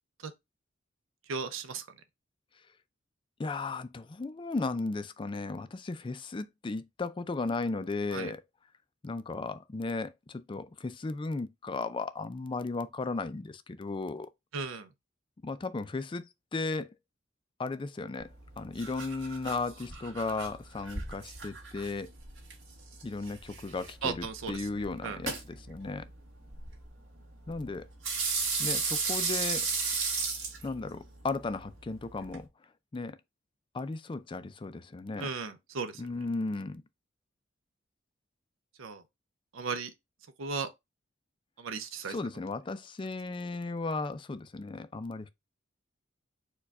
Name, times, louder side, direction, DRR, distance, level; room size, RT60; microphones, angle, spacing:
voice 1, 1.3-1.8 8.1-8.3 14.5-14.9 24.0-24.7 25.0-25.2 35.2-36.0 38.8-39.0 39.5-39.9 40.4-40.7 41.6-42.2, right 5 dB, 90° right, 0.6 m, -35 dB
voice 2, 3.4-8.4 9.0-14.3 15.4-16.3 16.5-16.9 17.6-18.3 18.6-22.1 23.0-26.1 27.5-27.9 28.6-29.7 30.6-32.5 32.9-33.2 33.7-35.3 36.0-36.8 42.1-45.3, left 3 dB, 25° left, 0.4 m, -35 dB
sound 1, 18.2-32.4, right 4 dB, 65° right, 1.8 m, -36 dB
4.6 x 2.3 x 4.6 m
head